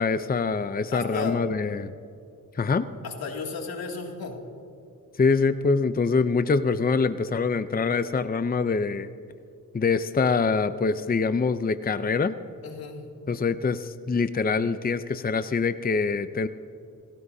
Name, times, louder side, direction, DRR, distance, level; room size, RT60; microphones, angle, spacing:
voice 1, 0.0-1.9 2.5-2.9 5.2-9.1 9.7-12.3 13.3-16.5, left 4 dB, 25° left, 11 dB, 0.6 m, -24 dB
voice 2, 0.9-1.4 3.0-4.4 12.6-13.1, left 5 dB, 85° left, 0 dB, 2.6 m, -34 dB
27.0 x 16.5 x 2.8 m, 2.4 s
cardioid pair, 60°, 35 cm